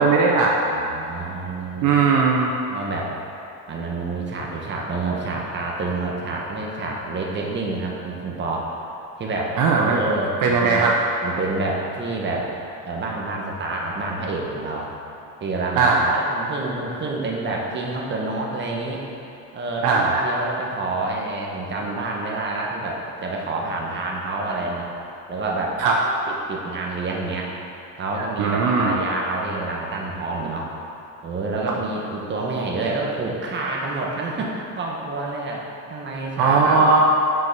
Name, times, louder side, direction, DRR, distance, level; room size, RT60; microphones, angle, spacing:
voice 1, 0.0-0.6 1.8-2.5 9.6-10.0 10.4-11.0 15.8-16.2 19.8-20.2 25.8-26.0 28.4-29.0 36.4-37.0, right 4 dB, 60° right, -1 dB, 0.8 m, -18 dB
voice 2, 0.6-2.0 2.7-3.1 3.7-8.7 9.2-10.9 11.2-12.5 12.8-14.9 15.4-19.0 19.5-24.9 25.3-25.8 26.3-27.5 28.0-30.7 31.2-35.6 35.9-36.8, right 3 dB, 30° right, -2 dB, 1.3 m, -28 dB
6.1 x 5.6 x 6.0 m, 2.8 s
cardioid pair, 125°, 35 cm